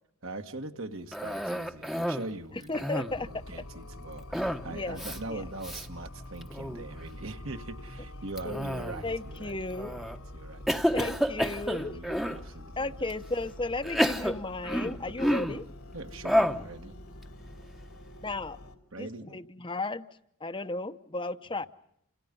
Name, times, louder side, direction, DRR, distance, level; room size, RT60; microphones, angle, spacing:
voice 1, 0.2-2.9 3.2-9.6 9.8-10.6 11.8-13.0 15.0-15.4 15.9-16.9 18.9-19.4, right 2 dB, 60° right, 6 dB, 2.0 m, -42 dB
Cough, 1.1-2.3 2.6-3.3 4.3-4.7 5.0-5.2 5.6-5.9 6.4-6.8 8.4-9.2 9.8-10.2 10.7-12.4 13.1-13.2 13.8-15.6 16.2-16.7, equal, ahead, 1.1 m, -30 dB
voice 2, 2.7-3.4 4.7-5.0 5.3-5.4 8.4-8.6 9.0-9.9 10.9-12.4 12.8-15.7 18.2-18.6 19.0-20.1 20.4-21.7, left 2 dB, 20° left, 9 dB, 0.9 m, -34 dB
sound 1, 3.1-18.8, left 1 dB, 85° left, 3.0 m, -46 dB
29.0 x 28.0 x 5.4 m, 0.74 s
head